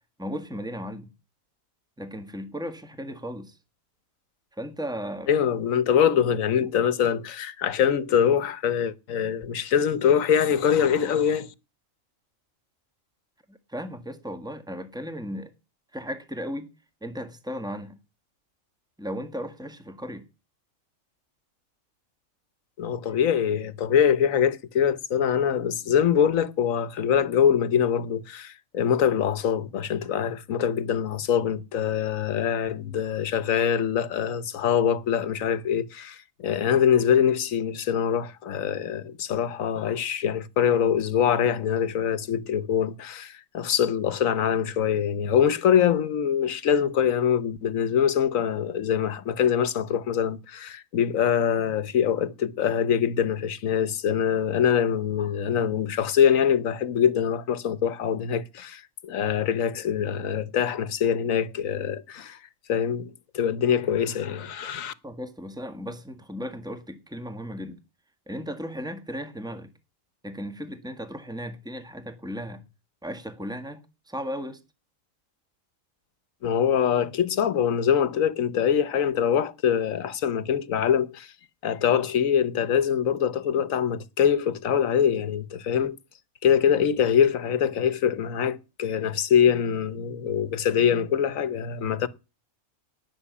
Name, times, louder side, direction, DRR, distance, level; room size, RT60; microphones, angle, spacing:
voice 1, 0.2-1.1 2.0-3.6 4.5-5.3 6.6-6.7 13.5-15.5 15.9-16.7 17.0-18.0 19.0-20.2 23.0-23.3 65.0-67.8 68.3-69.7 70.2-72.6 73.0-74.6, equal, 5° right, 1.7 m, -36 dB
voice 2, 5.3-11.5 22.8-62.4 62.7-64.9 76.4-81.3 81.6-86.0 86.4-92.1, left 8 dB, 75° left, 1.4 m, -24 dB
18.5 x 6.4 x 8.3 m
omnidirectional pair, 1.4 m